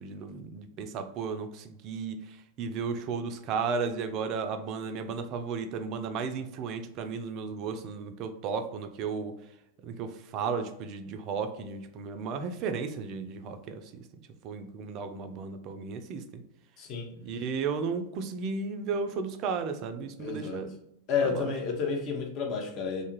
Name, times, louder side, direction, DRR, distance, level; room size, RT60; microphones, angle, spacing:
voice 1, 0.0-2.2 2.6-9.4 9.8-14.0 14.4-16.2 17.2-20.7 21.2-21.5, right 5 dB, 40° right, 8 dB, 0.3 m, -34 dB
voice 2, 16.8-17.1 20.2-20.6 21.1-23.0, left 5 dB, 40° left, 1 dB, 0.7 m, -31 dB
2.5 x 2.3 x 2.9 m, 0.80 s
figure-of-eight pair, 90°, 0 cm